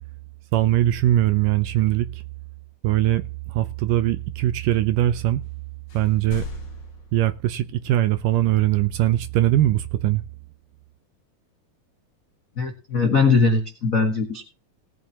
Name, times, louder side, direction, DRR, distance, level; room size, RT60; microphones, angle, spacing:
voice 1, 0.5-2.2 2.8-5.4 5.9-6.5 7.1-10.2, right 14 dB, 80° right, 2.0 m, -21 dB
sound 1, 5.4-5.6 5.9-7.9, left 6 dB, 50° left, 1.4 m, -39 dB
voice 2, 12.6-14.4, left 4 dB, 70° left, 0.7 m, -20 dB
19.0 x 8.8 x 2.9 m
omnidirectional pair, 4.2 m